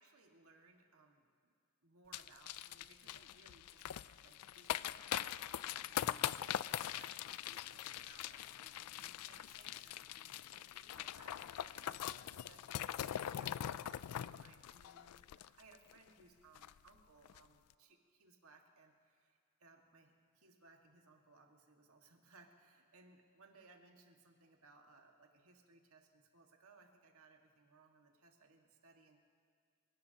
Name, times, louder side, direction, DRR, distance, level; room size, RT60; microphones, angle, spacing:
voice 1, 0.0-1.5 1.8-29.2, right 3 dB, 70° right, 2 dB, 1.8 m, -65 dB
sound 1, 2.1-15.9 16.2-16.3 16.6-16.9 17.2-17.4, left 11 dB, 90° left, 0.3 m, -42 dB
27.5 x 17.5 x 2.9 m, 2.3 s
head